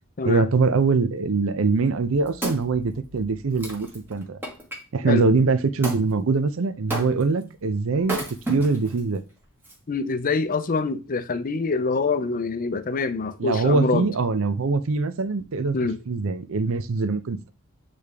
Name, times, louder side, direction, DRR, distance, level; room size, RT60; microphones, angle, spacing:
voice 1, 0.2-4.4 4.9-9.2 13.4-15.8 16.1-17.5, right 4 dB, 65° right, 0.6 m, -23 dB
Wood, 1.8-4.8 5.8-6.1 6.9-7.4 8.0-9.0 9.6-9.7, right 1 dB, 10° right, 1.4 m, -32 dB
voice 2, 9.9-14.1 15.7-16.0, left 4 dB, 40° left, 0.5 m, -25 dB
8.5 x 3.3 x 3.5 m
head